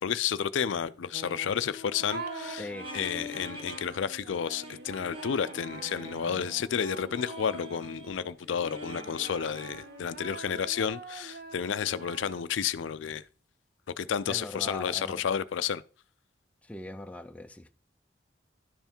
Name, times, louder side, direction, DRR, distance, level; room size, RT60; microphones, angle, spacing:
voice 1, 0.0-2.7 2.9-13.2 14.0-15.8, left 7 dB, 75° left, 0.4 m, -31 dB
sound 1, 1.1-3.9 4.2-10.3, left 1 dB, 30° right, 1.5 m, -44 dB
sound 2, 2.0-8.3 8.9-12.8, right 4 dB, 55° right, 0.8 m, -45 dB
voice 2, 2.6-3.1 14.3-15.2 16.6-17.7, left 1 dB, 5° left, 0.4 m, -41 dB
11.0 x 5.7 x 4.4 m
head